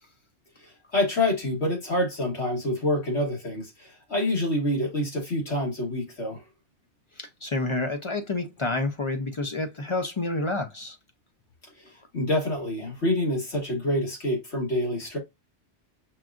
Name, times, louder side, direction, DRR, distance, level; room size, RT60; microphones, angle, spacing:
voice 1, 0.6-6.4 11.8-15.2, left 1 dB, 85° left, 2.0 m, -27 dB
voice 2, 7.2-11.0, left 2 dB, 40° left, 0.5 m, -29 dB
5.9 x 2.4 x 2.4 m
omnidirectional pair, 1.1 m